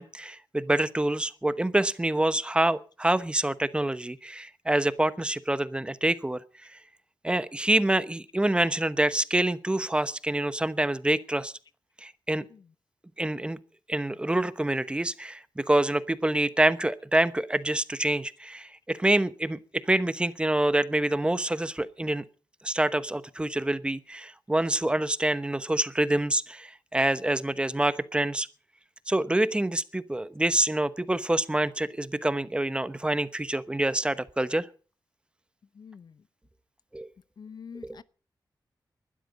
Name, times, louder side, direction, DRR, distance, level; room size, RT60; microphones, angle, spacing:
voice 1, 0.0-6.4 7.2-11.5 12.0-12.4 13.2-13.6 13.9-22.2 22.6-28.5 29.1-34.7 36.9-37.1 37.8-38.0, right 1 dB, 15° right, 1.0 m, -26 dB
voice 2, 37.4-38.0, left 6 dB, 65° left, 0.8 m, -44 dB
20.5 x 12.5 x 5.1 m
wide cardioid pair, 125°, 8 cm